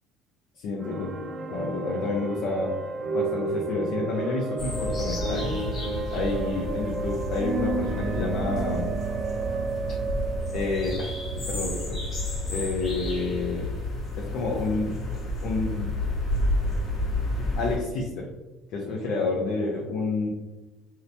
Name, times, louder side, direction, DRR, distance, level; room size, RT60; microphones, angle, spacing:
voice 1, 0.6-1.1 1.5-2.7 3.1-5.6 6.1-8.9 10.5-12.0 12.5-13.7 14.2-15.0 15.4-15.9 17.4-18.3 18.7-20.3, left 3 dB, 65° left, -2 dB, 0.5 m, -29 dB
sound 1, 0.8-12.5, right 4 dB, 35° right, 0.3 m, -32 dB
sound 2, 4.6-17.8, left 1 dB, 40° left, 1.0 m, -31 dB
2.8 x 2.1 x 2.5 m, 1.1 s
cardioid pair, 120°, 0 cm